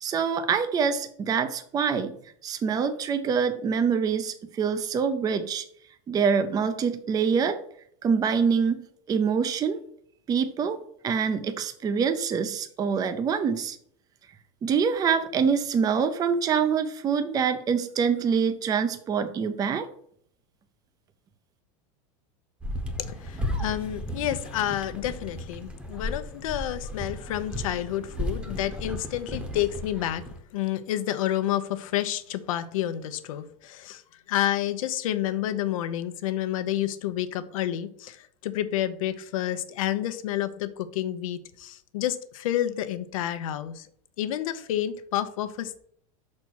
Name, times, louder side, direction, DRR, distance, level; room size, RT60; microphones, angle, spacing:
voice 1, 0.0-2.1 2.4-5.6 6.1-7.6 8.0-9.8 10.3-10.8 11.0-13.8 14.6-19.9, right 6 dB, 20° right, 9 dB, 0.6 m, -25 dB
sound 1, 22.6-30.4, equal, 5° right, 1.0 m, -35 dB
voice 2, 23.0-34.0 34.3-43.9 44.2-45.8, left 12 dB, 85° left, 11 dB, 0.8 m, -29 dB
5.8 x 4.3 x 6.2 m, 0.65 s
supercardioid pair, 140°, 17 cm